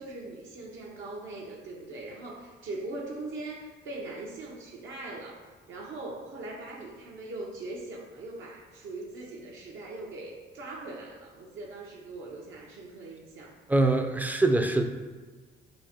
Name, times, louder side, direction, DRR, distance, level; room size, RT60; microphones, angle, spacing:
voice 1, 0.0-13.6, right 2 dB, 75° right, -3 dB, 0.6 m, -41 dB
voice 2, 13.7-14.8, right 2 dB, 10° right, 5 dB, 0.3 m, -23 dB
3.7 x 2.1 x 4.1 m, 1.4 s
cardioid pair, 90°, 20 cm